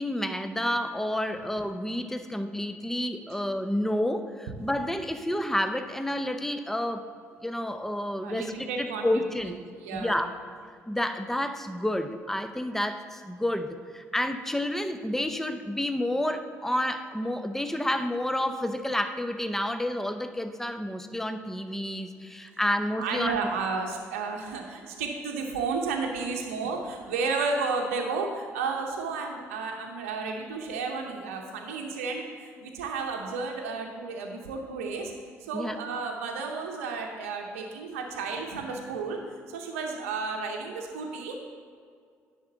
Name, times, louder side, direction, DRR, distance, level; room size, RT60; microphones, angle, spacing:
voice 1, 0.0-7.1 7.4-9.6 9.9-10.3 10.9-23.4 35.5-35.8, left 1 dB, 5° left, 8 dB, 0.7 m, -30 dB
voice 2, 8.2-9.1 9.8-10.3 23.0-35.1 35.5-39.2 39.5-41.4, right 4 dB, 80° right, 2 dB, 0.7 m, -32 dB
10.5 x 3.6 x 6.7 m, 2.1 s
hypercardioid pair, 45°, 7 cm